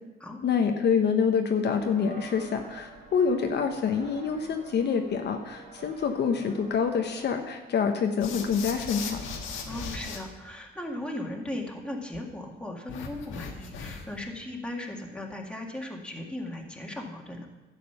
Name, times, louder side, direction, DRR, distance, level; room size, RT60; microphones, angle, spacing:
voice 1, 0.4-9.2, left 6 dB, 60° left, 5 dB, 0.9 m, -26 dB
sound 1, 1.8-7.3, right 3 dB, 40° right, 3.1 m, -48 dB
sound 2, 8.2-10.2 12.9-14.2, left 5 dB, 85° left, 1.4 m, -37 dB
voice 2, 9.7-17.5, left 1 dB, 5° left, 0 dB, 1.9 m, -37 dB
11.5 x 7.6 x 5.7 m, 1.1 s
cardioid pair, 90°, 20 cm